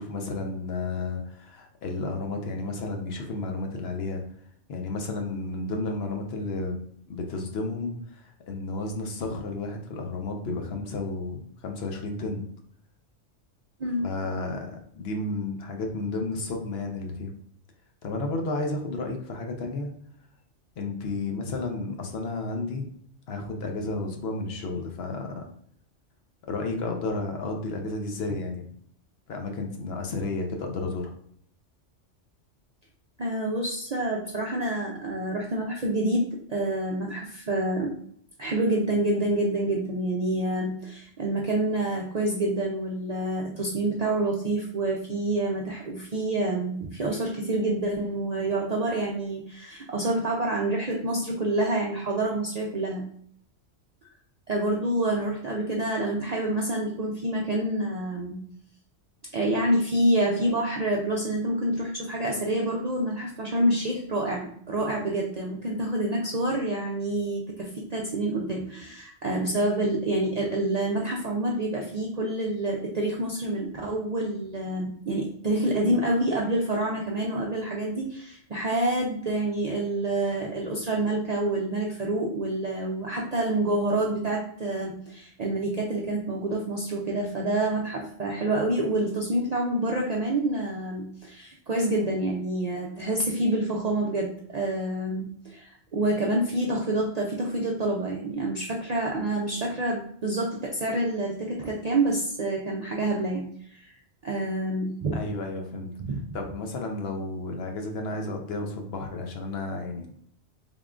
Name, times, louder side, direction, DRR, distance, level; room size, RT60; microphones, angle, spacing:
voice 1, 0.0-4.2 4.7-6.8 7.1-12.5 14.0-17.3 18.0-19.9 20.8-22.9 23.3-25.4 26.5-28.6 29.3-31.1 105.1-105.9 106.3-110.1, left 2 dB, 65° left, 3 dB, 0.8 m, -32 dB
voice 2, 33.2-37.9 38.4-53.0 54.5-58.4 59.3-103.4 103.7-104.0 104.2-105.1, right 1 dB, 55° right, -2 dB, 0.4 m, -27 dB
3.6 x 3.5 x 2.4 m, 0.64 s
omnidirectional pair, 1.2 m